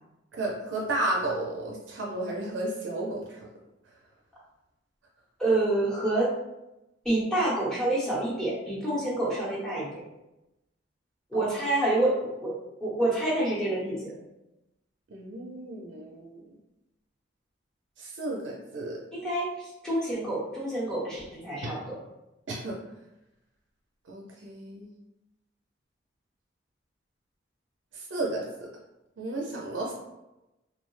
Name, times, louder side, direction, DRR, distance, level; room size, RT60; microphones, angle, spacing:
voice 1, 0.3-3.4 11.3-11.5 15.1-16.4 18.0-19.0 21.6-21.7 22.5-22.8 24.1-24.9 27.9-28.7 29.2-29.9, right 2 dB, 70° right, -1 dB, 0.5 m, -33 dB
voice 2, 5.4-6.3 7.0-10.0 11.3-12.5 12.8-14.1 19.1-19.5 19.8-21.8, right 1 dB, 5° left, -8 dB, 0.9 m, -27 dB
2.6 x 2.0 x 3.1 m, 0.94 s
head